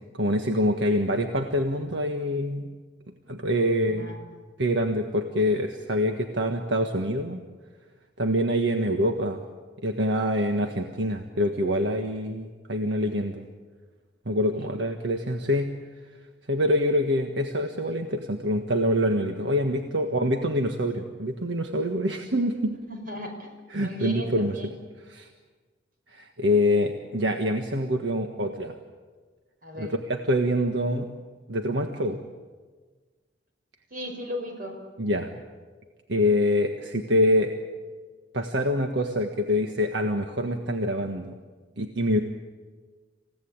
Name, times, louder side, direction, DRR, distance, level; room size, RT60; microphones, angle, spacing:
voice 1, 0.1-2.7 3.3-4.1 4.6-7.4 8.2-9.4 9.8-13.5 14.2-15.7 16.5-22.8 23.7-24.6 25.1-25.3 26.1-28.7 29.8-31.1 31.5-32.2 35.0-35.3 36.1-37.5 38.3-41.3 41.8-42.2, equal, 75° right, 4 dB, 1.5 m, -25 dB
voice 2, 3.8-4.4 14.5-14.7 22.9-23.5 23.8-24.8 28.5-28.6 29.6-29.9 33.9-34.8, left 1 dB, 50° right, 3 dB, 5.4 m, -37 dB
28.0 x 16.5 x 8.8 m, 1.4 s
head